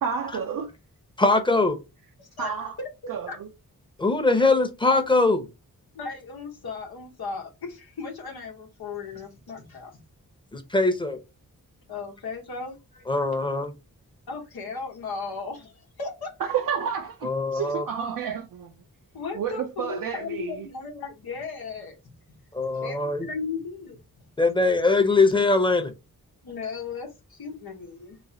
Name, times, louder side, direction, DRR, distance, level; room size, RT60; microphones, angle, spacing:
voice 1, 0.0-0.7 2.4-2.7 3.1-3.5 16.5-18.7 19.3-20.7, right 7 dB, 65° right, 0.5 m, -30 dB
voice 2, 1.2-1.8 4.0-5.4 10.5-11.2 13.1-13.7 17.2-17.8 22.5-23.3 24.4-25.9, left 3 dB, 15° left, 0.8 m, -22 dB
voice 3, 2.2-2.5 2.8-2.9 3.3-3.4 4.3-4.4 5.9-10.0 11.9-13.0 14.3-16.3 19.1-22.4 22.7-24.0 26.4-28.2, left 4 dB, 80° left, 1.0 m, -36 dB
3.1 x 3.1 x 2.7 m
wide cardioid pair, 70°, 36 cm